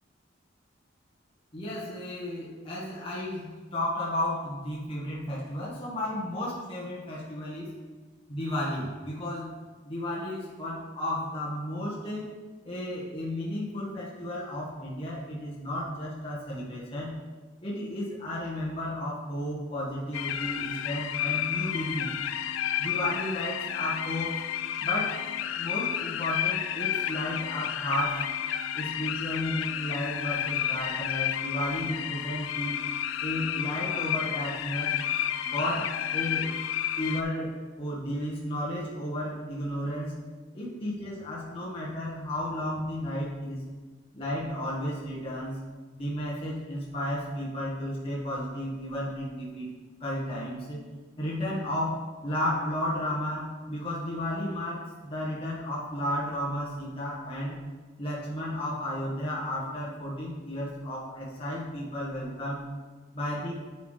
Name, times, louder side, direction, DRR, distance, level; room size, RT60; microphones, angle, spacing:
voice 1, 1.5-7.8 8.3-9.5 9.8-12.3 12.6-17.1 17.6-22.1 22.8-24.4 24.8-28.3 28.7-32.8 33.2-34.9 35.4-36.5 37.0-40.1 40.5-43.6 44.1-45.6 45.9-49.7 50.0-50.8 51.2-57.6 58.0-62.6 63.1-63.6, left 1 dB, 30° left, -7 dB, 1.5 m, -33 dB
sound 1, 20.1-37.2, left 10 dB, 90° left, 0.4 m, -31 dB
9.3 x 6.0 x 3.3 m, 1.4 s
head